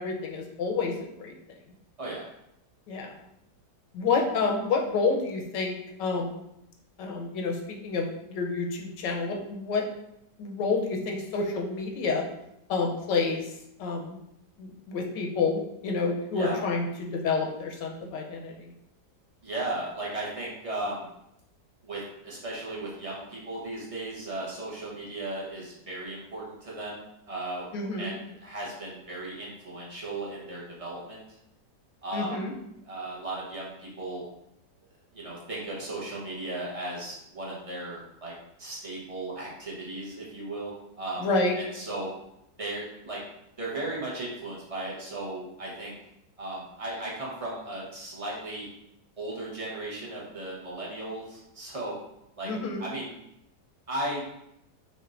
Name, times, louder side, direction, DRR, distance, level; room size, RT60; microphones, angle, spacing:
voice 1, 0.0-1.3 2.9-3.2 3.9-5.7 6.0-6.4 7.0-9.8 10.4-12.2 12.7-13.5 13.8-14.2 14.6-18.7 27.7-28.1 32.1-32.5 41.2-41.5 52.4-52.8, left 4 dB, 85° left, 1 dB, 1.4 m, -29 dB
voice 2, 16.3-16.7 19.4-21.1 21.8-27.7 28.0-31.2 32.0-32.5 32.8-34.2 35.1-38.3 38.6-41.3 41.6-42.1 42.6-43.2 43.6-46.0 46.4-48.7 49.2-52.0 52.4-52.5 52.8-53.1 53.9-54.3, right 2 dB, 30° right, -5 dB, 0.7 m, -36 dB
5.7 x 2.5 x 2.5 m, 0.80 s
omnidirectional pair, 1.9 m